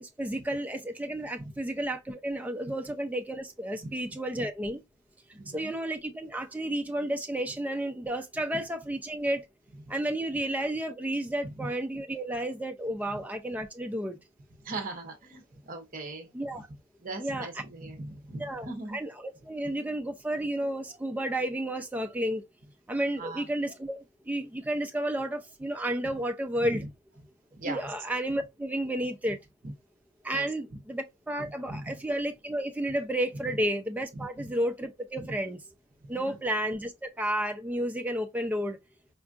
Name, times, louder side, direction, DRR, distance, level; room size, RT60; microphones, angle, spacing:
voice 1, 0.0-4.8 5.5-9.5 9.9-14.2 16.3-16.7 17.2-17.5 18.4-22.4 22.9-26.8 27.6-29.4 30.2-35.6 36.1-38.8, right 1 dB, 5° right, 0.3 m, -32 dB
voice 2, 5.3-5.7 8.5-8.6 11.4-11.7 13.1-13.2 14.6-16.6 17.0-19.0 23.2-23.5 26.0-26.1 26.6-26.9 27.5-27.9 30.3-30.5 30.7-30.8 31.4-32.0 33.4-33.6 35.2-35.3 36.1-36.4, right 2 dB, 40° right, 0.8 m, -40 dB
4.5 x 2.3 x 2.4 m
head